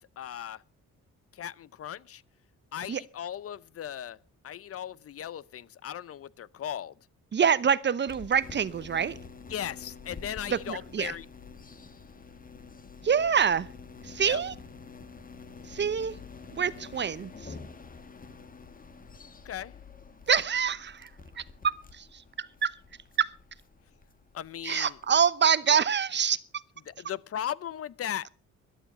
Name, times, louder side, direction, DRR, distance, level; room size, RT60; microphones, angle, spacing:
voice 1, 0.2-0.6 1.3-2.2 2.7-4.2 4.4-6.9 9.5-11.3 14.2-14.4 19.4-19.7 24.3-24.9 26.9-28.4, left 10 dB, 50° left, 0.6 m, -37 dB
voice 2, 7.3-9.1 10.5-11.1 13.0-13.7 14.0-14.5 15.7-16.2 16.5-17.6 20.3-21.1 21.3-22.8 23.2-23.3 24.6-26.4, right 7 dB, 35° right, 0.8 m, -26 dB
sound 1, 8.1-25.3, left 5 dB, 30° left, 1.6 m, -48 dB
13.0 x 11.5 x 5.5 m
cardioid pair, 90°, 30 cm